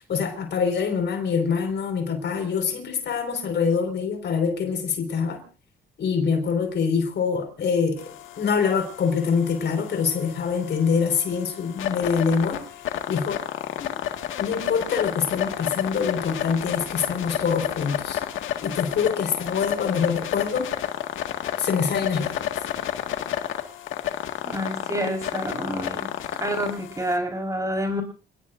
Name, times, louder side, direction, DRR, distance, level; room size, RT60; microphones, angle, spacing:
voice 1, 0.1-5.4 6.0-12.6 13.1-13.4 13.8-13.9 14.4-18.2 18.6-20.7 21.6-22.4, left 6 dB, 60° left, 6 dB, 5.0 m, -25 dB
sound 1, 8.0-27.2, left 11 dB, 85° left, 1.8 m, -31 dB
voice 2, 24.4-26.1 26.4-28.0, equal, 15° right, 4 dB, 4.6 m, -28 dB
29.0 x 19.0 x 2.6 m, 0.36 s
cardioid pair, 90°, 20 cm